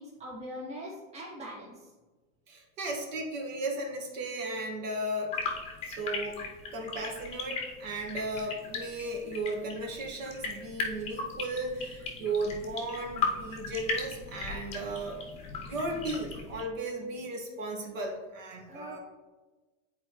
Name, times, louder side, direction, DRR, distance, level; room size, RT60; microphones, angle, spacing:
voice 1, 0.0-1.9 18.7-19.0, equal, 15° right, -5 dB, 1.8 m, -42 dB
voice 2, 2.5-5.3 5.9-6.5 6.7-15.2 15.6-19.0, right 2 dB, 75° right, 0 dB, 1.7 m, -35 dB
sound 1, 5.3-16.6, left 4 dB, 15° left, 0.6 m, -37 dB
9.7 x 4.4 x 3.1 m, 1.2 s
supercardioid pair, 170°, 39 cm